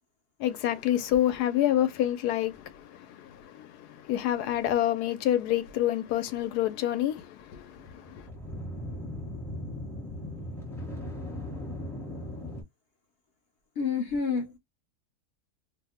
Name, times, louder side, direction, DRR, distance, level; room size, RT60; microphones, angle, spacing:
voice 1, 0.4-8.3, left 12 dB, 80° left, 1.2 m, -28 dB
sound 1, 7.6-12.6, left 1 dB, 5° left, 0.4 m, -38 dB
voice 2, 13.8-14.6, left 5 dB, 60° left, 0.6 m, -28 dB
2.8 x 2.1 x 3.4 m
omnidirectional pair, 1.7 m